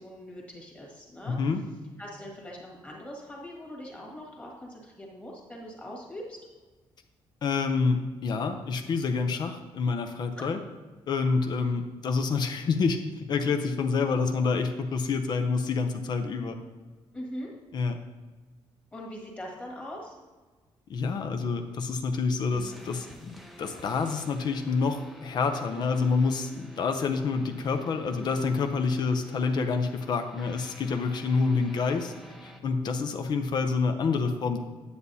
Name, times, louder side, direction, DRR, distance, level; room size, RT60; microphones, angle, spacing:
voice 1, 0.0-1.4 2.0-6.4 10.4-10.5 17.1-17.5 18.9-20.2, equal, 15° left, -2 dB, 1.6 m, -41 dB
voice 2, 1.3-1.6 7.4-10.6 11.1-16.6 17.7-18.0 20.9-32.1 32.4-34.6, left 4 dB, 45° left, 6 dB, 0.6 m, -28 dB
sound 1, 22.5-32.6, equal, ahead, 0.5 m, -49 dB
9.4 x 8.1 x 2.7 m, 1.3 s
cardioid pair, 175°, 10 cm